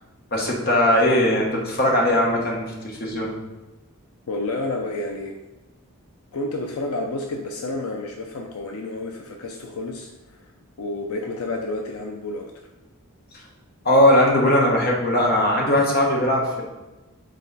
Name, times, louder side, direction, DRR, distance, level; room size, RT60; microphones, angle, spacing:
voice 1, 0.3-3.3 13.8-16.6, left 1 dB, 45° left, -1 dB, 1.3 m, -19 dB
voice 2, 4.3-5.4 6.3-10.5 10.8-12.5, left 2 dB, 80° left, 2 dB, 0.6 m, -30 dB
6.6 x 4.1 x 4.0 m, 1.1 s
head